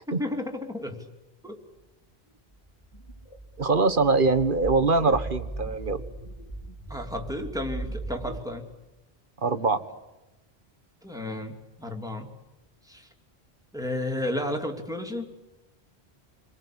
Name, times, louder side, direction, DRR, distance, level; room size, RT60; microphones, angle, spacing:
voice 1, 0.1-1.0 1.4-1.6 6.9-8.6 11.0-12.3 12.8-13.1 13.7-15.3, left 1 dB, 5° right, 2 dB, 3.2 m, -32 dB
sound 1, 2.6-8.4, right 2 dB, 30° left, 5.7 m, -38 dB
voice 2, 3.6-6.0 9.4-9.8, right 3 dB, 50° right, 9 dB, 1.7 m, -23 dB
28.5 x 23.0 x 8.8 m, 1.0 s
omnidirectional pair, 1.1 m